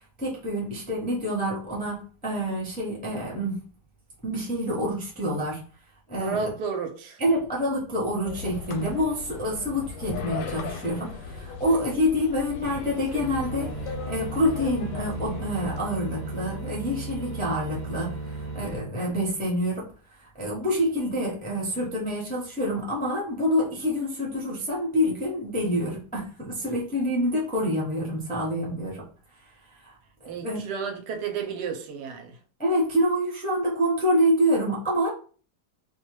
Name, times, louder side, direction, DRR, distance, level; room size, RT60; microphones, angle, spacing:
voice 1, 0.2-3.6 4.2-5.6 6.1-6.4 7.2-19.9 20.2-29.1 29.8-29.9 30.2-30.6 32.6-35.1, equal, 15° left, 0.3 m, -27 dB
voice 2, 6.2-7.2 30.3-32.4, right 5 dB, 80° right, 1.2 m, -32 dB
sound 1, 8.2-15.8, left 5 dB, 90° left, 1.2 m, -38 dB
sound 2, 12.6-18.8, right 2 dB, 10° right, 0.9 m, -36 dB
2.7 x 2.3 x 3.0 m
omnidirectional pair, 1.8 m